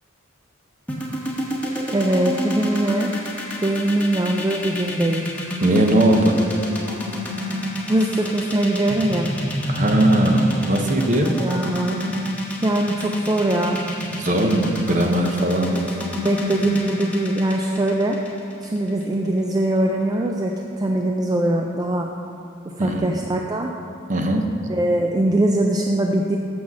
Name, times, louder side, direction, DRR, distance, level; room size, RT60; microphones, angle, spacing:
sound 1, 0.9-19.0, equal, 10° left, 1.1 m, -28 dB
voice 1, 1.9-3.1 3.6-5.3 7.9-9.3 11.4-12.2 12.6-13.8 15.7-15.8 16.2-18.2 18.6-22.1 22.8-23.7 24.7-26.4, right 1 dB, 20° right, 1 dB, 0.3 m, -22 dB
voice 2, 5.6-6.4 9.7-11.3 14.1-15.7 22.8-23.0 24.1-24.4, right 1 dB, 40° right, 4 dB, 0.8 m, -19 dB
7.4 x 6.1 x 6.1 m, 2.8 s
head